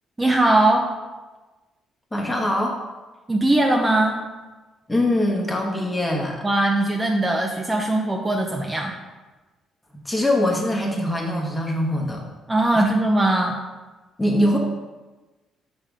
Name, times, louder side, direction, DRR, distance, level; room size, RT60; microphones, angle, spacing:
voice 1, 0.2-0.9 3.3-4.2 6.4-8.9 12.5-13.6, right 2 dB, 15° right, 1 dB, 0.5 m, -20 dB
voice 2, 2.1-2.8 4.9-6.4 9.9-12.2 12.7-12.8 14.2-14.6, left 1 dB, 15° left, 0 dB, 1.1 m, -23 dB
5.6 x 3.4 x 5.1 m, 1.2 s
cardioid pair, 100°, 0 cm